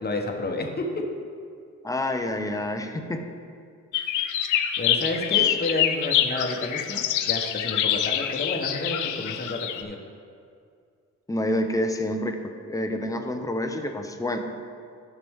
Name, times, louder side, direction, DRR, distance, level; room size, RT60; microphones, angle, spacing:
voice 1, 0.0-0.8 4.8-10.0, left 2 dB, 30° left, 2 dB, 1.2 m, -30 dB
voice 2, 1.8-3.2 5.4-5.6 11.3-14.4, left 1 dB, 10° left, 5 dB, 0.7 m, -28 dB
sound 1, 3.9-9.8, left 10 dB, 80° left, 0.6 m, -25 dB
11.5 x 5.9 x 3.6 m, 2.3 s
cardioid pair, 90°, 30 cm